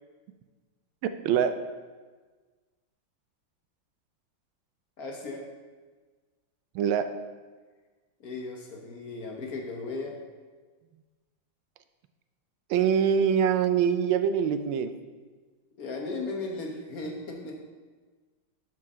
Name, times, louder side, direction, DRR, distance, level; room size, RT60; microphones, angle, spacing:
voice 1, 1.0-1.5 6.7-7.1 12.7-14.9, right 8 dB, 85° right, 10 dB, 1.4 m, -24 dB
voice 2, 5.0-5.5 8.2-10.2 15.8-17.5, left 3 dB, 55° left, 1 dB, 1.2 m, -36 dB
12.0 x 4.6 x 3.6 m, 1.4 s
omnidirectional pair, 2.1 m